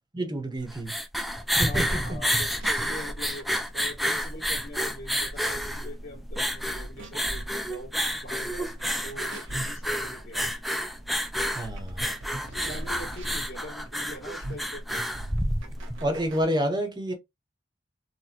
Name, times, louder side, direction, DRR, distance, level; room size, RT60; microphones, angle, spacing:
voice 1, 0.1-1.0 1.6-2.2 11.5-12.1 16.0-17.1, right 1 dB, 20° right, 0.9 m, -29 dB
sound 1, 0.6-16.0, equal, ahead, 0.3 m, -29 dB
voice 2, 1.7-3.5 3.7-7.9 8.2-8.7 9.0-10.5 12.5-14.8, equal, 50° left, 1.9 m, -43 dB
sound 2, 1.9-16.4, right 1 dB, 75° right, 1.0 m, -43 dB
4.1 x 2.1 x 2.8 m
head